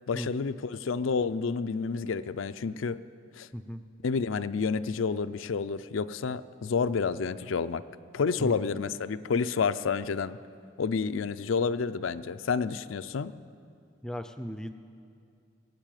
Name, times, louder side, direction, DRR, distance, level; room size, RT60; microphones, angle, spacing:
voice 1, 0.1-3.0 3.3-3.5 4.0-7.8 8.1-10.4 10.8-13.3, left 5 dB, 75° left, 12 dB, 0.4 m, -29 dB
voice 2, 3.5-3.8 8.4-8.7 14.0-14.7, equal, 5° left, 9 dB, 0.5 m, -36 dB
19.5 x 8.2 x 9.1 m, 2.3 s
head